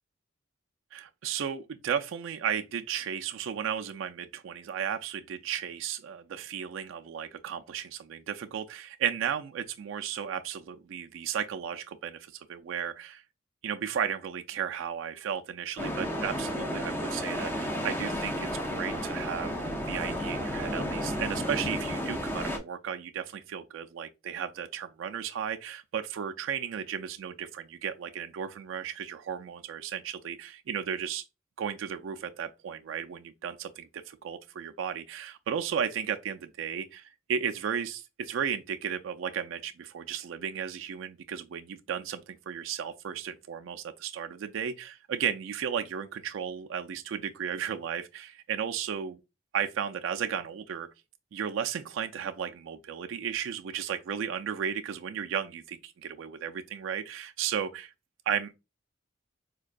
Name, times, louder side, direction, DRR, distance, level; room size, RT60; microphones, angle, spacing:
voice 1, 0.9-13.2 13.6-19.6 19.9-31.2 31.6-49.2 49.5-50.9 51.3-57.9 58.3-58.5, right 8 dB, 80° right, 0.3 m, -34 dB
sound 1, 15.8-22.6, equal, 10° left, 0.5 m, -32 dB
4.6 x 2.2 x 2.5 m
head